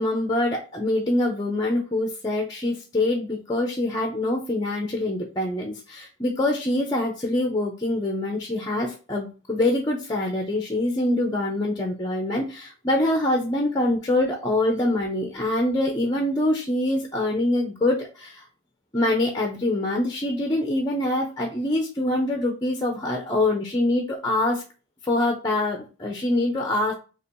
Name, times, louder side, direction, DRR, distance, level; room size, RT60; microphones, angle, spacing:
voice 1, 0.0-18.4 18.9-24.6 25.0-26.9, left 1 dB, 20° left, 2 dB, 0.6 m, -24 dB
3.0 x 2.7 x 4.4 m, 0.34 s
head